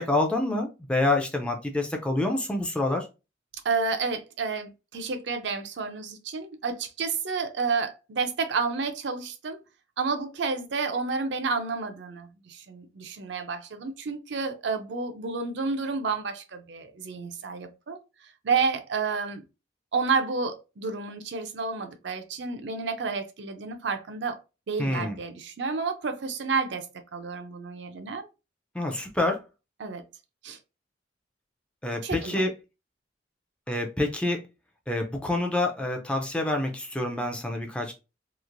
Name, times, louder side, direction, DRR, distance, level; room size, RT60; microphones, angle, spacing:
voice 1, 0.0-3.1 24.8-25.2 28.7-29.4 31.8-32.5 33.7-34.4 34.9-37.9, left 2 dB, 5° left, 0.4 m, -27 dB
voice 2, 3.6-9.6 10.0-19.4 19.9-24.4 24.7-26.9 27.1-28.3 29.8-30.0 30.4-30.6 32.0-32.5, right 4 dB, 70° right, 0.5 m, -30 dB
3.0 x 2.5 x 2.5 m
head